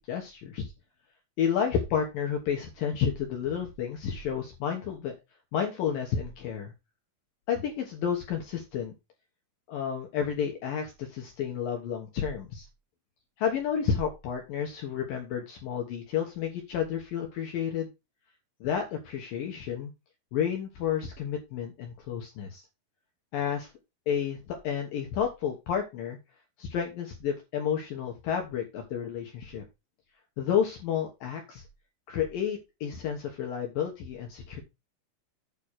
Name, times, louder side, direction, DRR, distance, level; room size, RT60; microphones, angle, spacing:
voice 1, 0.1-0.7 1.4-5.1 5.5-6.7 7.5-8.9 9.7-12.7 13.4-17.9 18.6-19.9 20.3-22.6 23.3-23.7 24.1-26.2 26.6-29.6 30.4-31.6 32.1-34.6, left 8 dB, 65° left, 2 dB, 2.5 m, -31 dB
8.9 x 4.0 x 6.5 m, 0.25 s
omnidirectional pair, 5.2 m